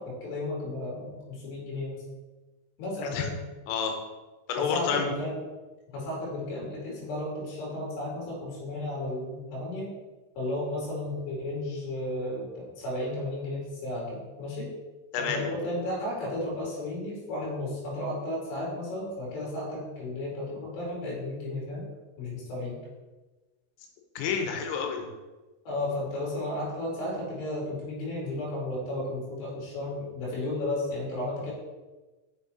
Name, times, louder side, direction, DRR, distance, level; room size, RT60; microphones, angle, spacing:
voice 1, 0.0-2.0 2.8-3.3 4.6-5.4 5.9-9.9 10.4-14.7 15.2-21.8 22.2-22.8 25.7-31.5, left 1 dB, 60° left, -4 dB, 4.4 m, -33 dB
voice 2, 3.7-4.0 4.5-5.1 15.1-15.4 24.2-25.1, left 6 dB, 90° left, 3 dB, 3.6 m, -29 dB
7.3 x 6.2 x 4.2 m, 1.2 s
omnidirectional pair, 5.7 m